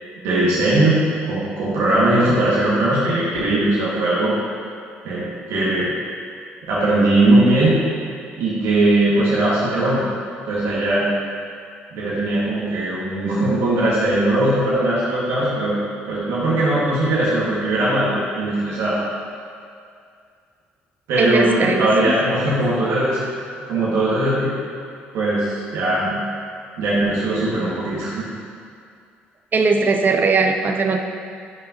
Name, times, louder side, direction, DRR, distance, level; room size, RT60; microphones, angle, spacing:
voice 1, 0.2-4.3 5.0-5.9 6.7-7.8 8.4-10.0 10.5-11.1 11.9-15.7 16.1-18.1 18.3-19.0 21.1-23.3 23.7-24.5 25.1-26.2 26.8-28.2, right 1 dB, 80° right, -9 dB, 1.8 m, -19 dB
voice 2, 21.2-21.9 29.5-31.0, right 4 dB, 40° right, 4 dB, 0.7 m, -19 dB
10.0 x 5.5 x 2.9 m, 2.3 s
supercardioid pair, 60°, 5 cm